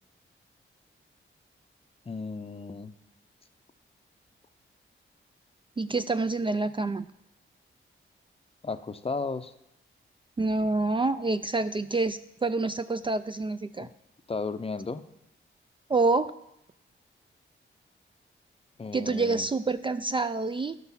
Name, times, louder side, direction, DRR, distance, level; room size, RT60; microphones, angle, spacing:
voice 1, 2.1-2.9 8.6-9.5 13.8-13.9 14.3-15.0 18.8-19.5, left 4 dB, 25° left, 11 dB, 0.6 m, -34 dB
voice 2, 5.8-7.1 10.4-13.9 15.9-16.3 18.9-20.8, right 3 dB, 25° right, 11 dB, 0.3 m, -27 dB
11.5 x 5.9 x 5.7 m, 0.82 s
cardioid pair, 80°, 21 cm